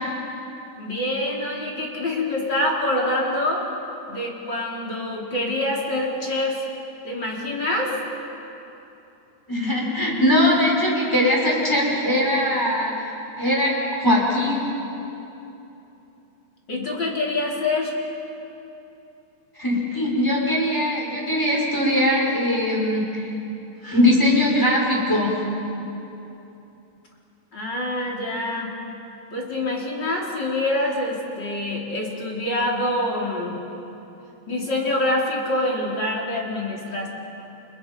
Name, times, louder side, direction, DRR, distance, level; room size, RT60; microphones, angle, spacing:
voice 1, 0.8-3.6 4.1-6.6 7.0-8.0 16.7-17.9 27.5-28.7 29.3-33.6 34.5-37.1, left 1 dB, 25° left, -3 dB, 4.1 m, -25 dB
voice 2, 9.5-13.7 14.0-14.7 19.6-23.3 23.8-25.3, left 1 dB, 5° left, -3 dB, 5.5 m, -21 dB
30.0 x 28.5 x 5.5 m, 2.9 s
omnidirectional pair, 4.6 m